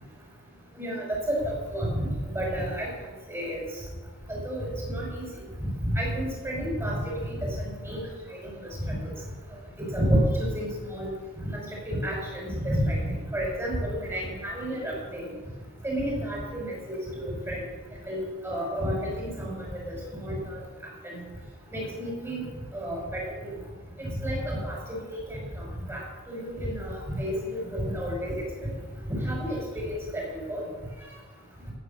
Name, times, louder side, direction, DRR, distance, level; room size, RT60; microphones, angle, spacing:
voice 1, 0.8-2.1 2.3-2.9 3.3-3.6 4.3-5.2 5.9-8.0 8.4-8.7 9.0-9.1 9.9-11.1 11.5-15.3 15.8-17.7 18.1-20.6 21.0-21.2 21.7-22.4 22.7-23.6 24.0-25.0 25.3-26.0 26.3-28.4 29.1-30.2 30.5-30.6, equal, 10° right, -3 dB, 5.8 m, -30 dB
16.0 x 9.8 x 7.0 m, 1.4 s
head